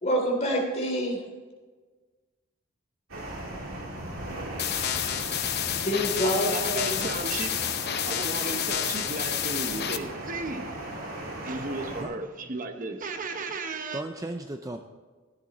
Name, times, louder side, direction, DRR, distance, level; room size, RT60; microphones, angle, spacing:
voice 1, 0.0-1.2 5.8-7.1 8.2-8.6, equal, 35° left, 1 dB, 3.2 m, -28 dB
sound 1, 3.1-12.0, right 1 dB, 80° right, 3.8 m, -38 dB
sound 2, 4.6-10.0, left 10 dB, 50° left, 0.8 m, -29 dB
voice 2, 6.2-7.6 8.0-10.7 11.4-14.0, right 3 dB, 40° right, 6 dB, 0.9 m, -34 dB
voice 3, 12.0-12.7 13.9-14.8, right 1 dB, 15° right, 6 dB, 0.5 m, -37 dB
14.5 x 10.5 x 4.1 m, 1.4 s
head